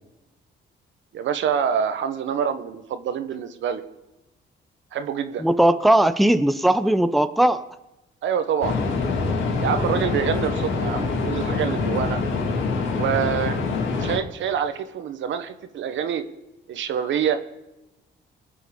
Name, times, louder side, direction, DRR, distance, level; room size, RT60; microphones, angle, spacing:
voice 1, 1.1-3.8 4.9-5.5 8.2-8.7 9.6-12.2 12.9-13.6 13.9-16.2 16.7-17.4, right 8 dB, 75° right, 9 dB, 1.2 m, -26 dB
voice 2, 5.4-7.6, right 1 dB, ahead, 10 dB, 0.6 m, -18 dB
sound 1, 8.6-14.2, left 4 dB, 70° left, 2.1 m, -25 dB
21.0 x 7.6 x 5.2 m, 0.98 s
cardioid pair, 90°, 20 cm